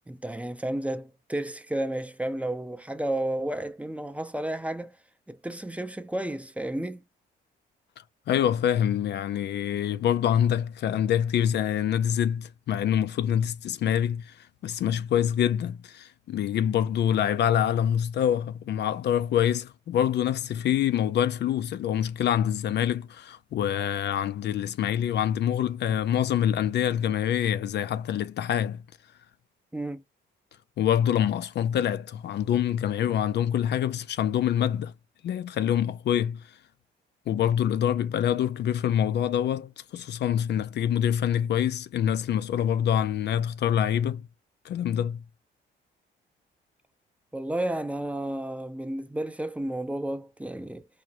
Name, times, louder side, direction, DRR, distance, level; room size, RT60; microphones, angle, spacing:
voice 1, 0.1-5.0 5.3-7.0 29.7-30.0 47.3-50.9, right 1 dB, 5° right, 0.5 m, -32 dB
voice 2, 8.3-28.8 30.8-34.9 35.2-36.4 37.3-44.3 44.6-45.2, left 10 dB, 60° left, 0.4 m, -26 dB
4.9 x 2.2 x 2.7 m
cardioid pair, 90°, 20 cm